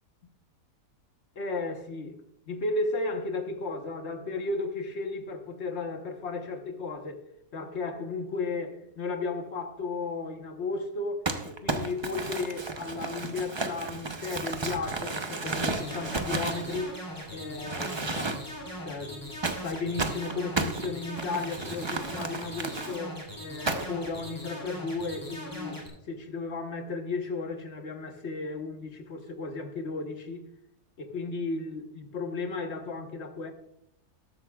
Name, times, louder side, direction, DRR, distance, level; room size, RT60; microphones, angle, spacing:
voice 1, 1.3-2.2 2.5-7.2 7.5-17.0 17.3-18.6 18.8-19.3 19.6-30.5 31.0-33.5, left 3 dB, 45° left, 1.3 m, -34 dB
Crumpling crinkling, 11.3-17.3 17.7-18.6 19.4-23.0 23.7-24.1, right 3 dB, 30° right, 0.4 m, -33 dB
sound 1, 15.4-25.9, equal, 10° left, 2.9 m, -40 dB
13.0 x 12.0 x 2.4 m
omnidirectional pair, 1.7 m